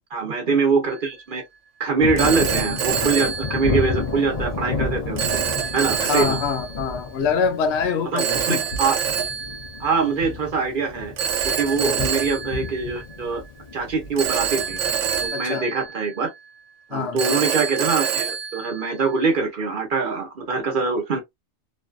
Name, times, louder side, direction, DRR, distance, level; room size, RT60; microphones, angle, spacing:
voice 1, 0.1-1.4 1.8-5.2 5.7-6.4 8.1-9.0 9.8-11.1 11.5-13.4 13.7-14.8 15.2-16.3 16.9-21.2, right 4 dB, 50° right, 0.8 m, -23 dB
Telephone, 0.9-1.2 2.2-4.2 5.2-6.9 8.2-10.3 11.2-13.5 14.2-16.5 17.2-19.4, right 8 dB, 80° right, 0.9 m, -27 dB
Thunder, 2.0-15.3, left 4 dB, 50° left, 0.4 m, -31 dB
voice 2, 6.1-8.6 11.8-12.0 15.3-15.7 16.9-17.4, left 6 dB, 70° left, 0.8 m, -25 dB
2.6 x 2.3 x 2.4 m
omnidirectional pair, 1.2 m